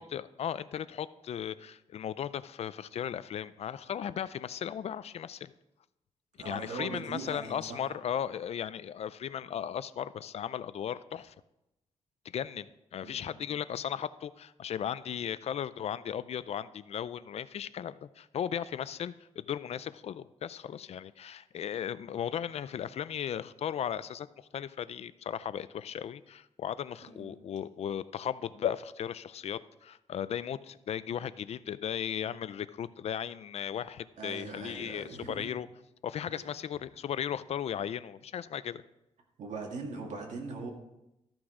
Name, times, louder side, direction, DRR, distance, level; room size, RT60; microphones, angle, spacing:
voice 1, 0.0-5.5 6.4-11.3 12.2-35.7 36.0-38.8, left 9 dB, 65° left, 16 dB, 0.4 m, -36 dB
voice 2, 6.4-7.9 13.0-13.4 27.1-27.3 34.2-35.5 36.3-36.5 39.4-40.7, right 3 dB, 90° right, 1 dB, 2.0 m, -41 dB
13.5 x 6.1 x 4.9 m, 0.89 s
wide cardioid pair, 155°, 12 cm